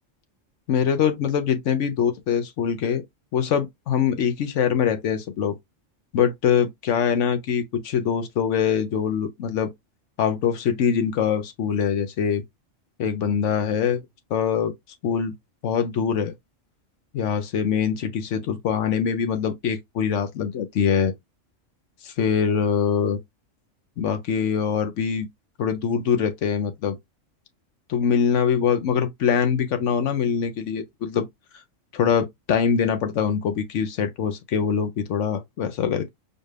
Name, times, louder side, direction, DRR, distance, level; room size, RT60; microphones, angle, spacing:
voice 1, 0.7-3.0 3.3-5.5 6.1-9.7 10.2-12.4 13.0-14.0 14.3-14.7 15.0-15.3 15.6-16.3 17.1-21.1 22.0-23.2 24.0-25.3 25.6-27.0 27.9-31.3 31.9-36.1, left 7 dB, 70° left, 1.0 m, -23 dB
4.3 x 2.4 x 3.2 m
omnidirectional pair, 1.3 m